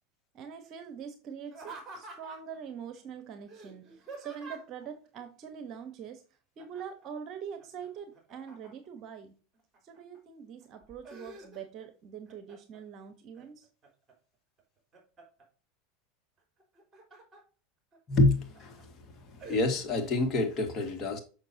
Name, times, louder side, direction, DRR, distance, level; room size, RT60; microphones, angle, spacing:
voice 1, 0.3-6.2 6.6-9.3 9.8-13.7, right 7 dB, 45° right, 1.1 m, -43 dB
Laughter, 1.4-2.6 3.5-4.8 6.6-7.0 7.4-9.0 9.5-10.2 10.6-11.9 12.3-12.8 13.3-14.1 14.6-15.4 16.6-17.4 17.9-18.0 18.5-18.8 19.4-19.6, right 3 dB, 20° right, 3.8 m, -48 dB
voice 2, 18.1-18.9 19.4-21.2, left 2 dB, 35° left, 2.0 m, -27 dB
6.6 x 6.3 x 2.8 m
hypercardioid pair, 100°, 0 cm